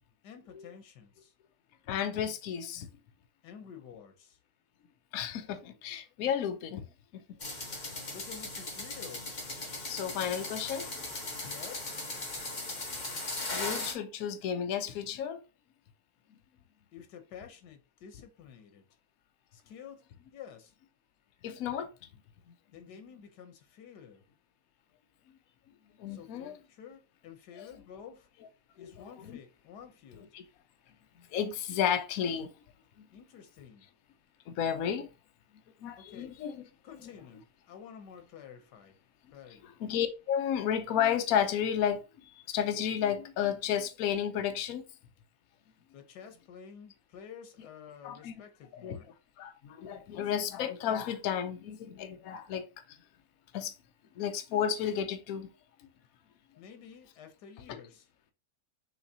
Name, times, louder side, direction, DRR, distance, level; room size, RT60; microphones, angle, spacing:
voice 1, 0.2-1.3 3.4-4.4 8.1-9.3 11.4-12.0 16.9-18.9 19.5-20.0 20.3-20.7 22.7-24.2 26.1-28.3 28.8-30.3 33.1-33.9 36.0-36.4 36.8-39.0 39.3-39.7 45.9-49.1 56.6-58.1, left 7 dB, 85° left, 1.4 m, -50 dB
voice 2, 1.9-2.9 5.1-6.8 7.1-7.4 9.9-10.9 13.5-15.4 21.4-21.9 26.0-26.5 27.6-27.7 28.8-29.4 30.3-30.4 31.3-32.5 33.0-33.1 34.5-35.1 35.8-36.6 39.6-44.8 48.0-48.3 48.7-49.0 49.4-53.0 53.5-53.7 54.2-55.5, left 8 dB, 65° left, 1.1 m, -32 dB
sound 1, 7.4-13.9, left 2 dB, 30° left, 1.1 m, -38 dB
6.2 x 2.9 x 2.7 m
omnidirectional pair, 1.7 m